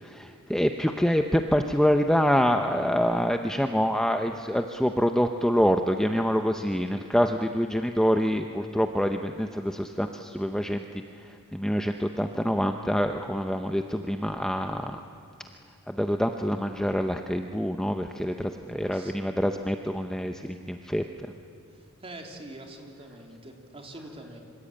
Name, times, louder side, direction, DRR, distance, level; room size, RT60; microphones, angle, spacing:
voice 1, 0.2-10.8 11.2-15.0 15.9-21.0, equal, 5° left, 5 dB, 0.7 m, -26 dB
voice 2, 18.7-19.3 21.7-24.4, right 1 dB, 25° right, 2 dB, 3.2 m, -45 dB
26.5 x 25.5 x 8.7 m, 2.4 s
head